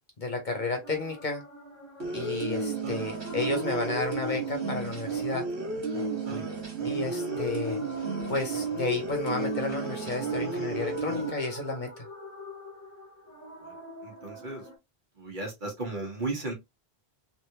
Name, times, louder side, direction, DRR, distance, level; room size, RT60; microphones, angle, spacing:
voice 1, 0.2-1.4 2.1-5.4 6.8-7.8 8.3-11.9, left 3 dB, 45° left, 1.0 m, -32 dB
sound 1, 0.8-14.8, equal, 15° left, 0.9 m, -45 dB
sound 2, 2.0-11.3, right 3 dB, 80° right, 1.6 m, -32 dB
voice 2, 13.6-14.7 15.1-16.5, right 2 dB, 50° right, 1.4 m, -36 dB
3.4 x 2.5 x 2.9 m
omnidirectional pair, 1.1 m